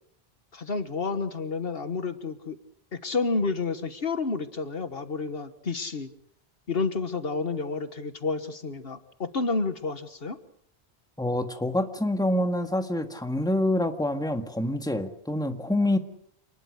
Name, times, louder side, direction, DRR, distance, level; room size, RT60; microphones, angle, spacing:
voice 1, 0.5-2.6 2.9-6.1 6.7-10.4, left 4 dB, 65° left, 10 dB, 1.6 m, -30 dB
voice 2, 11.2-16.0, left 1 dB, 5° left, 6 dB, 1.7 m, -26 dB
28.0 x 20.5 x 6.5 m, 0.67 s
omnidirectional pair, 1.1 m